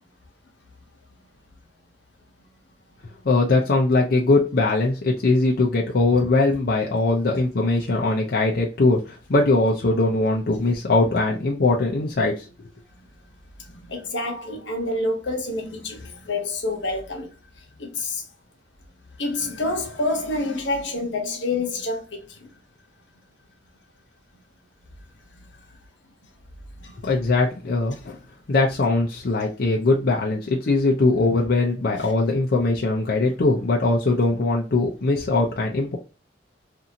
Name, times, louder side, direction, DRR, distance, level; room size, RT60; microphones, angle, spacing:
voice 1, 3.2-12.4 27.0-28.2 28.5-36.0, left 2 dB, 55° left, 0.5 m, -21 dB
voice 2, 13.7-17.3 17.8-18.2 19.2-22.4 26.8-26.9, left 2 dB, 80° left, 0.9 m, -28 dB
2.7 x 2.5 x 2.7 m
head